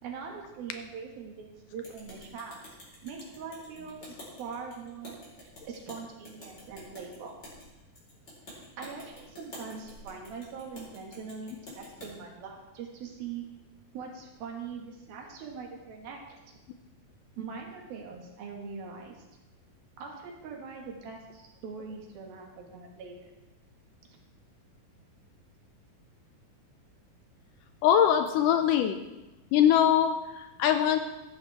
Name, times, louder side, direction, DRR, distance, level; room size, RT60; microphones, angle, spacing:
voice 1, 0.0-2.6 3.0-5.2 5.7-7.3 8.5-13.4 13.9-16.2 16.5-16.6 17.4-19.2 20.0-23.3, right 5 dB, 85° right, 0 dB, 3.6 m, -42 dB
sound 1, 1.8-12.1, left 1 dB, 25° left, 4.6 m, -49 dB
voice 2, 27.8-29.0 29.5-31.0, left 9 dB, 80° left, 7 dB, 2.0 m, -22 dB
15.0 x 11.5 x 3.5 m, 1.0 s
omnidirectional pair, 4.2 m